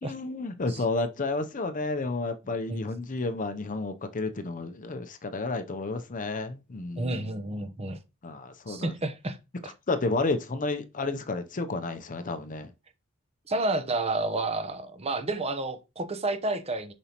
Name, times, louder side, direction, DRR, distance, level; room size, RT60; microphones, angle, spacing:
voice 1, 0.0-7.3 8.2-8.9 9.9-12.7, left 3 dB, 40° left, 0.6 m, -31 dB
voice 2, 7.0-8.0 8.7-9.4 9.6-9.7 13.5-16.9, right 2 dB, 30° right, 0.8 m, -30 dB
7.0 x 5.4 x 2.9 m
head